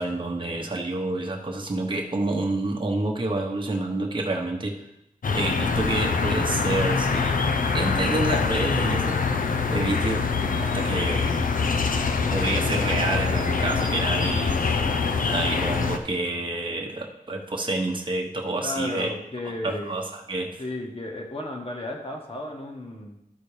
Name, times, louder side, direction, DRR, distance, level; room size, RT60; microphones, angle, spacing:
voice 1, 0.0-4.7 5.3-7.4 7.7-10.2 10.6-11.4 12.3-14.5 15.2-19.1 19.6-20.5, right 2 dB, 35° right, 0 dB, 1.1 m, -28 dB
sound 1, 5.2-16.0, left 4 dB, 65° left, 0.7 m, -24 dB
voice 2, 18.6-19.9 20.6-23.1, left 1 dB, 40° left, 0 dB, 1.6 m, -34 dB
12.0 x 4.2 x 5.0 m, 0.83 s
wide cardioid pair, 105°, 15 cm